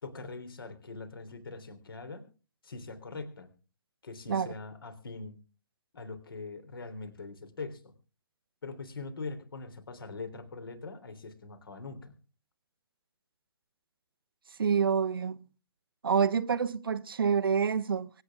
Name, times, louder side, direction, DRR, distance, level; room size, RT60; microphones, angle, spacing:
voice 1, 0.0-2.3 2.6-3.5 4.0-5.4 5.9-7.9 8.6-12.1, left 3 dB, 60° left, 3.6 m, -42 dB
voice 2, 14.6-15.4 16.0-18.1, right 6 dB, 60° right, 0.8 m, -27 dB
24.5 x 9.2 x 3.6 m
figure-of-eight pair, 130°, 13 cm